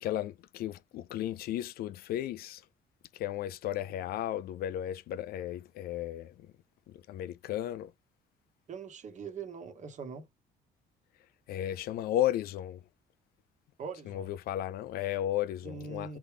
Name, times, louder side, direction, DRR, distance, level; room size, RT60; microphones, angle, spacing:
voice 1, 0.0-2.6 3.1-6.3 7.1-7.9 11.5-12.8 14.1-16.2, left 12 dB, 65° left, 0.4 m, -34 dB
voice 2, 8.7-10.3 13.8-14.3 15.6-16.2, right 5 dB, 45° right, 1.2 m, -42 dB
4.1 x 3.3 x 3.3 m
cardioid pair, 110°, 17 cm